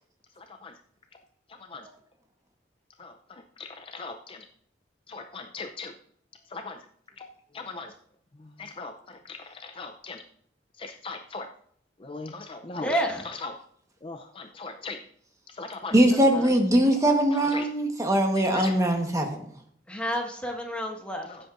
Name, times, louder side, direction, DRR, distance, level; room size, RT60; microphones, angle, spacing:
voice 1, 3.6-4.5 5.1-5.9 6.5-6.8 7.2-7.3 7.5-7.9 8.6-10.2 10.8-11.5 12.0-13.0 13.4-13.5 14.0-15.0 15.5-15.9 17.5-17.7 18.4-18.7 21.3-21.4, left 3 dB, 30° left, 6 dB, 0.5 m, -38 dB
voice 2, 12.8-13.3 16.3-16.5 19.9-21.3, equal, 5° left, 1 dB, 1.6 m, -30 dB
voice 3, 15.9-19.4, right 1 dB, 20° right, 4 dB, 1.2 m, -21 dB
15.5 x 8.0 x 2.5 m, 0.65 s
head